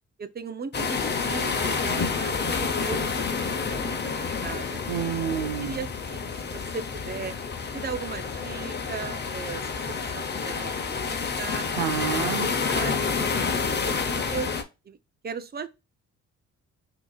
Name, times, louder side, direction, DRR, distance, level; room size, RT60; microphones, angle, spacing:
voice 1, 0.2-4.8 5.3-7.3 7.7-9.8 10.1-11.7 11.9-14.5 14.9-15.0 15.2-15.7, right 5 dB, 30° right, 0.7 m, -38 dB
sound 1, 0.7-14.6, left 5 dB, 35° left, 0.9 m, -29 dB
voice 2, 4.9-5.8 11.8-12.5, right 10 dB, 85° right, 0.6 m, -29 dB
6.0 x 2.9 x 2.3 m
cardioid pair, 90°, 30 cm